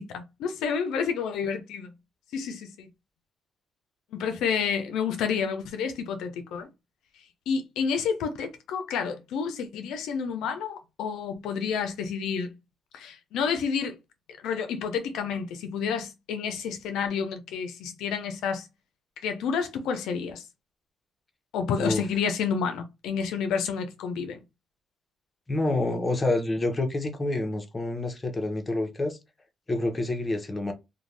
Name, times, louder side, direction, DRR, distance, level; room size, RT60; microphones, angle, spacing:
voice 1, 0.0-1.9 2.3-2.9 4.1-6.7 7.5-12.5 12.9-14.0 14.4-18.7 19.2-20.4 21.5-24.4, left 6 dB, 85° left, 0.5 m, -29 dB
voice 2, 25.5-29.2 29.7-30.7, left 2 dB, 25° left, 0.8 m, -28 dB
2.5 x 2.2 x 3.2 m
cardioid pair, 90°, 0 cm